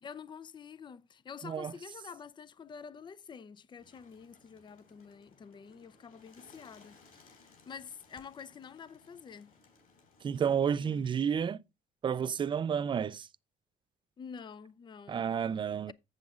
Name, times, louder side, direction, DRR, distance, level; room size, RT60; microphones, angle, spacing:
voice 1, 0.0-9.5 10.8-11.1 14.2-15.3 15.9-16.0, left 6 dB, 25° left, 0.5 m, -48 dB
Bird, 3.8-11.4, left 4 dB, 55° left, 4.1 m, -62 dB
voice 2, 10.2-11.6 12.0-13.3 15.1-15.9, right 7 dB, 30° right, 0.4 m, -31 dB
8.0 x 7.3 x 3.6 m
cardioid pair, 110°, 17 cm